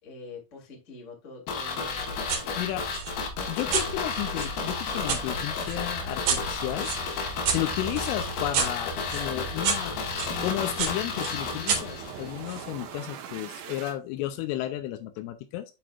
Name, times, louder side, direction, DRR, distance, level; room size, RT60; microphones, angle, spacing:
voice 1, 0.0-2.6 14.2-14.4, left 3 dB, 30° left, 1.3 m, -45 dB
sound 1, 1.5-12.4 12.7-12.8, left 5 dB, 65° left, 2.8 m, -33 dB
sound 2, 1.8-14.0, right 3 dB, 85° right, 3.8 m, -41 dB
sound 3, 2.3-2.5 2.9-5.2 5.7-10.3 10.8-12.7, right 6 dB, 60° right, 3.1 m, -31 dB
voice 2, 3.5-6.9 7.5-10.0 10.4-15.7, left 13 dB, 80° left, 3.0 m, -33 dB
12.0 x 4.3 x 2.4 m
omnidirectional pair, 5.9 m